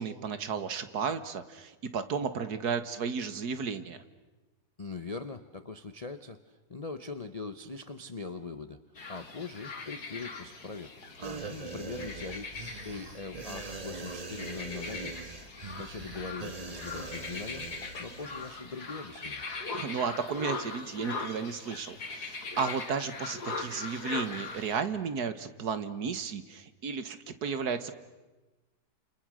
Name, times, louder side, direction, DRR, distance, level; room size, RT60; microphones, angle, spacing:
voice 1, 0.0-4.0 11.2-11.5 19.7-27.9, right 6 dB, 65° right, 11 dB, 1.8 m, -34 dB
voice 2, 4.8-8.8 9.1-10.9 11.5-12.5 12.8-15.2 15.7-17.7 18.0-19.4, left 4 dB, 30° left, 10 dB, 0.7 m, -41 dB
sound 1, 9.0-24.8, left 4 dB, 60° left, 2.6 m, -41 dB
sound 2, 11.2-18.6 18.9-19.0, right 4 dB, 25° right, 1.0 m, -42 dB
30.0 x 28.5 x 6.4 m, 1.1 s
omnidirectional pair, 1.9 m